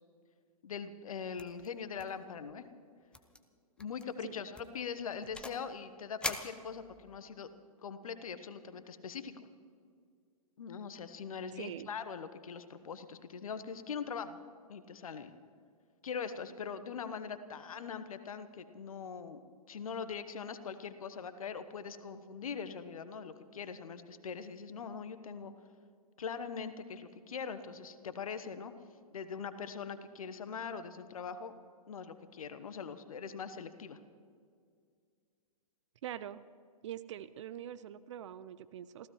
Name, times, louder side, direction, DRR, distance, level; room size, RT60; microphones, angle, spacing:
voice 1, 0.6-2.6 3.8-7.5 7.8-9.3 10.6-14.4 14.7-15.3 16.0-25.5 26.2-28.7 29.1-31.5 31.9-34.0, left 6 dB, 65° left, 11 dB, 1.1 m, -42 dB
sound 1, 1.4-1.7 2.0-2.5 3.1-3.4 3.8-4.0 4.5-5.7 6.2-7.2, left 2 dB, 5° left, 0.8 m, -42 dB
voice 2, 11.5-11.9 36.0-36.4 36.8-39.1, right 11 dB, 50° right, 15 dB, 0.6 m, -44 dB
27.0 x 15.5 x 3.1 m, 2.2 s
figure-of-eight pair, 110°, 19 cm